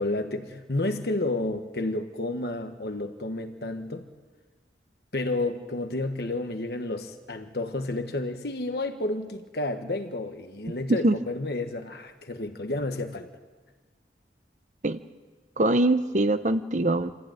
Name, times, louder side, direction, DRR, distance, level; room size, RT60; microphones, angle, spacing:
voice 1, 0.0-4.1 5.1-13.3, left 2 dB, 60° left, 6 dB, 1.4 m, -31 dB
voice 2, 15.6-17.1, right 2 dB, 45° right, 10 dB, 0.9 m, -23 dB
27.0 x 14.5 x 9.2 m, 1.4 s
head